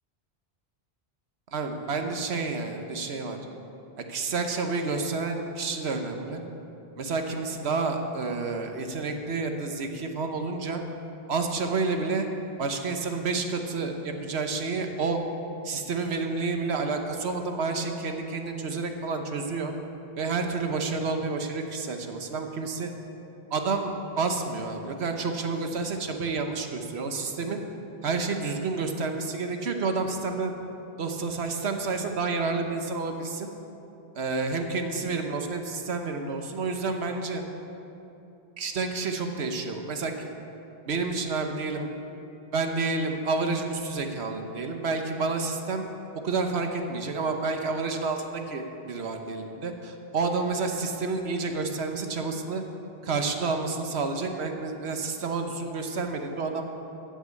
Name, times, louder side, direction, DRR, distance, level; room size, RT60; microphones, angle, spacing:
voice 1, 1.5-3.4 4.1-6.4 7.0-10.8 11.3-12.3 12.6-15.2 15.6-19.7 20.2-22.9 23.5-27.6 28.0-30.5 31.0-33.5 34.1-37.4 38.6-40.3 40.8-41.9 42.5-45.9 46.2-52.6 53.0-56.7, right 4 dB, 85° right, 5 dB, 1.3 m, -29 dB
14.5 x 6.2 x 8.3 m, 2.9 s
omnidirectional pair, 1.1 m